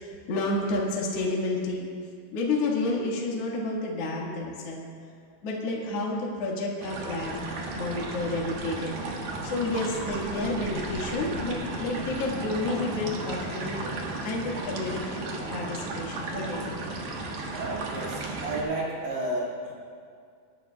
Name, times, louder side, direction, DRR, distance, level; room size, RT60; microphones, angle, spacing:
voice 1, 0.0-1.9 2.3-4.8 5.4-7.4 7.7-9.0 9.4-13.8 14.2-15.2 15.5-16.7, left 2 dB, 50° left, -3 dB, 2.2 m, -30 dB
sound 1, 6.8-18.6, right 2 dB, 60° right, 2.3 m, -34 dB
voice 2, 17.6-19.7, right 2 dB, 80° right, -5 dB, 4.2 m, -32 dB
22.5 x 11.5 x 2.3 m, 2.2 s
omnidirectional pair, 4.6 m